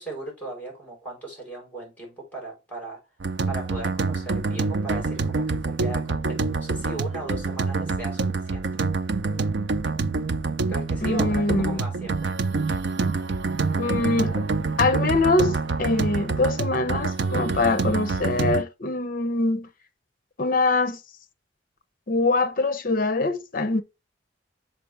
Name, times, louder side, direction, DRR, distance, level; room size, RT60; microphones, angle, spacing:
voice 1, 0.0-3.0 3.5-8.3 8.5-8.8 10.7-12.3, right 2 dB, 10° left, 4.1 m, -37 dB
sound 1, 3.2-18.6, right 4 dB, 75° right, 0.6 m, -26 dB
voice 2, 11.0-11.8 13.8-14.5 14.8-19.7 20.4-21.0 22.1-23.8, left 3 dB, 50° left, 0.7 m, -23 dB
6.7 x 4.6 x 3.3 m
head